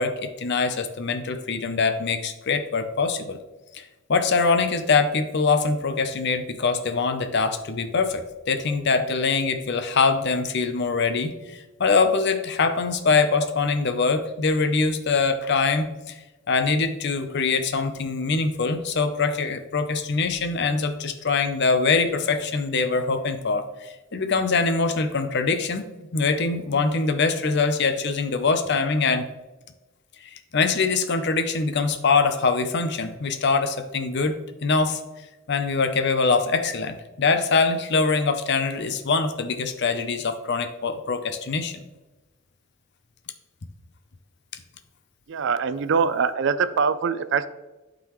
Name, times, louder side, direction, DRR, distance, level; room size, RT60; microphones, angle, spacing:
voice 1, 0.0-3.4 3.7-16.2 16.5-29.3 30.3-34.4 34.6-35.0 35.5-41.8, left 4 dB, 55° left, 8 dB, 0.7 m, -23 dB
voice 2, 45.3-47.5, right 5 dB, 60° right, 13 dB, 0.4 m, -23 dB
11.5 x 3.9 x 3.1 m, 1.1 s
head